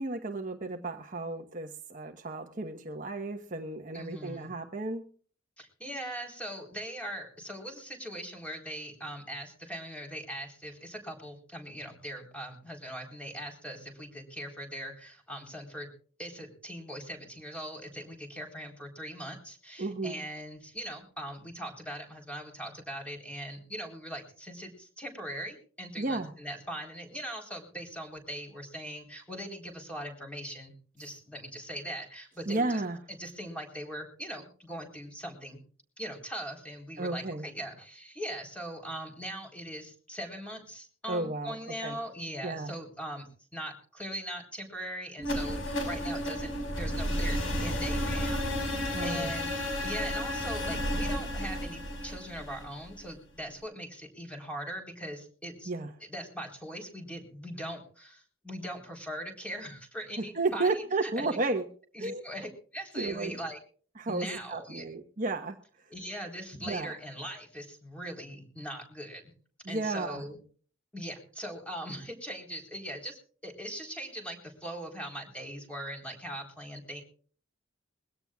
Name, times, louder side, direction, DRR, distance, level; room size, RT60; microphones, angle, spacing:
voice 1, 0.0-5.0 19.8-20.2 26.0-26.3 32.5-33.0 37.0-37.4 41.1-42.0 42.4-42.7 48.9-49.3 55.7-55.9 60.3-61.6 62.0-62.2 62.9-63.4 64.0-65.6 66.6-66.9 69.6-70.2, right 2 dB, 40° right, 5 dB, 1.2 m, -33 dB
voice 2, 3.9-4.5 5.6-15.9 16.2-32.8 33.1-35.6 36.0-43.3 43.5-55.7 56.0-61.4 61.9-63.6 64.1-64.9 65.9-69.3 69.7-70.4 70.9-77.0, equal, 5° left, 2 dB, 3.8 m, -41 dB
sound 1, 45.2-53.1, equal, 75° left, 4.9 m, -32 dB
22.5 x 17.0 x 2.4 m, 0.43 s
head